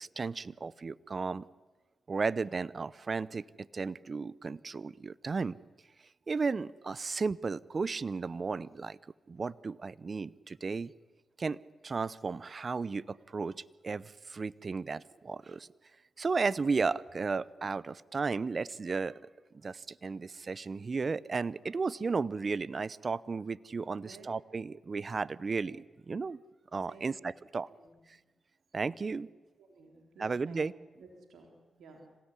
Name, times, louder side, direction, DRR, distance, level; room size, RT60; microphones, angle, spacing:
voice 1, 0.0-1.4 2.1-5.5 6.3-9.0 9.3-10.9 11.4-11.6 11.8-13.6 13.8-15.7 16.2-19.2 19.6-26.4 26.7-27.7 28.7-29.3 30.2-30.7, right 4 dB, 50° right, 21 dB, 0.8 m, -34 dB
voice 2, 23.9-24.3 25.5-25.7 26.9-27.2 27.7-28.0 29.6-30.7 31.0-32.0, right 3 dB, 75° right, 2 dB, 3.9 m, -55 dB
26.0 x 17.0 x 9.9 m, 1.2 s
supercardioid pair, 40°, 0 cm